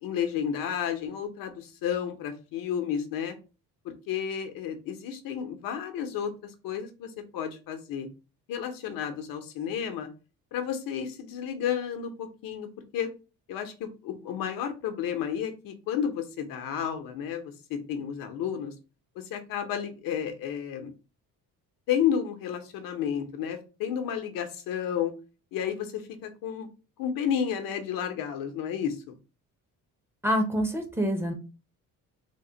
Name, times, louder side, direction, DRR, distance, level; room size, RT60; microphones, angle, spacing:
voice 1, 0.0-3.3 3.8-8.1 8.5-10.1 10.5-12.7 12.9-13.1 13.5-18.7 19.2-20.9 21.9-25.1 25.5-26.7 27.0-29.0, left 8 dB, 75° left, 6 dB, 0.8 m, -32 dB
voice 2, 30.2-31.3, equal, 5° right, 2 dB, 0.5 m, -26 dB
3.6 x 2.1 x 3.8 m, 0.32 s
cardioid pair, 165°, 34 cm